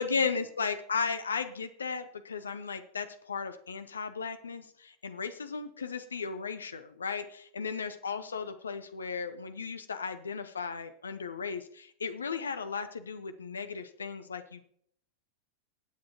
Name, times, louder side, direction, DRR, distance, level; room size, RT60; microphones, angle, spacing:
voice 1, 0.0-14.6, left 5 dB, 70° left, 10 dB, 0.8 m, -35 dB
20.5 x 8.7 x 2.9 m, 0.65 s
figure-of-eight pair, 90°, 0 cm